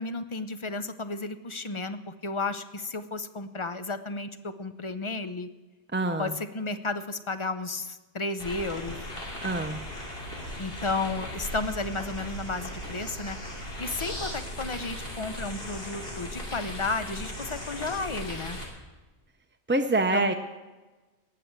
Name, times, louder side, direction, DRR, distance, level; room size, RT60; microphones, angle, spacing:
voice 1, 0.0-5.5 6.2-9.1 10.6-18.6 20.1-20.3, left 3 dB, 30° left, 11 dB, 0.7 m, -33 dB
voice 2, 5.9-6.3 9.4-9.8 19.7-20.3, right 2 dB, 15° right, 6 dB, 0.4 m, -25 dB
sound 1, 8.4-18.7, equal, 60° left, 3.1 m, -37 dB
18.0 x 6.8 x 7.4 m, 1.2 s
omnidirectional pair, 1.1 m